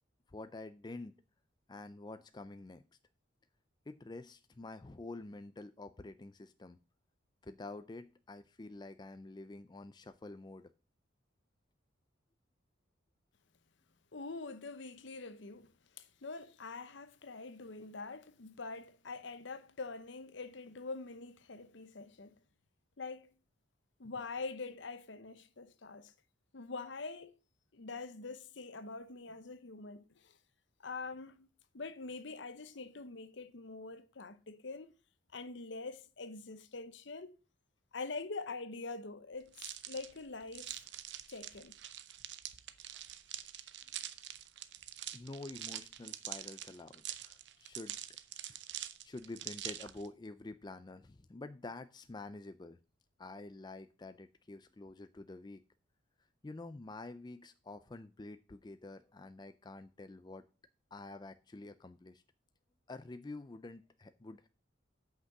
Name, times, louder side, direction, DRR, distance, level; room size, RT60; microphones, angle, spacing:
voice 1, 0.3-1.1 1.7-2.8 3.9-6.8 7.4-10.7 45.1-48.0 48.4-48.6 49.0-52.8 53.2-55.6 56.4-60.4 60.9-62.2 62.9-64.5, left 2 dB, 20° left, 0.4 m, -48 dB
voice 2, 14.1-15.7 16.0-22.4 23.0-23.3 24.0-26.1 26.5-27.3 27.7-30.4 30.8-31.5 31.7-34.9 35.3-37.4 37.9-40.8 41.3-41.8, left 3 dB, 60° left, 0.8 m, -44 dB
sound 1, 39.5-50.1, right 12 dB, 55° right, 0.7 m, -45 dB
8.2 x 5.9 x 6.5 m
head